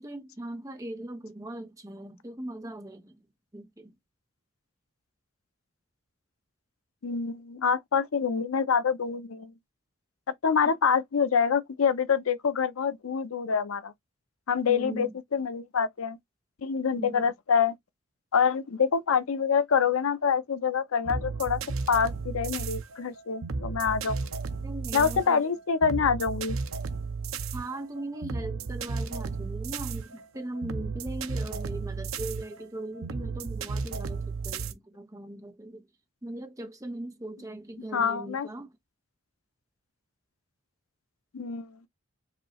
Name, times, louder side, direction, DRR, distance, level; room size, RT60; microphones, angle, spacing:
voice 1, 0.0-3.2 3.5-3.9 14.7-15.1 17.0-17.3 24.6-25.4 27.5-35.9 36.2-38.7, right 1 dB, 15° right, 0.7 m, -39 dB
voice 2, 7.0-9.5 10.4-13.9 14.5-16.2 16.6-17.8 18.3-21.6 21.9-24.3 24.9-26.6 37.9-38.5 41.3-41.8, left 6 dB, 85° left, 0.6 m, -26 dB
sound 1, 21.1-34.7, right 4 dB, 85° right, 0.6 m, -34 dB
5.0 x 2.7 x 2.9 m
head